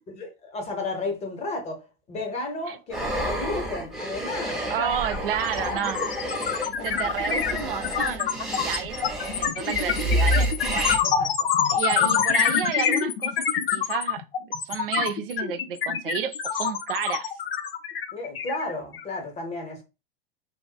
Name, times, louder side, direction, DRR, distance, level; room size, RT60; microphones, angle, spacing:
voice 1, 0.1-5.3 5.7-5.8 6.2-7.1 11.2-11.5 12.0-12.5 18.1-19.8, left 2 dB, 20° left, 0.9 m, -34 dB
sound 1, 2.9-11.0, right 1 dB, ahead, 0.4 m, -29 dB
sound 2, 4.3-4.5 4.8-19.1, left 8 dB, 70° left, 0.5 m, -26 dB
voice 2, 4.7-6.0 6.6-10.9 11.7-17.3, right 9 dB, 65° right, 0.4 m, -31 dB
2.7 x 2.3 x 2.3 m
figure-of-eight pair, 85°, 30 cm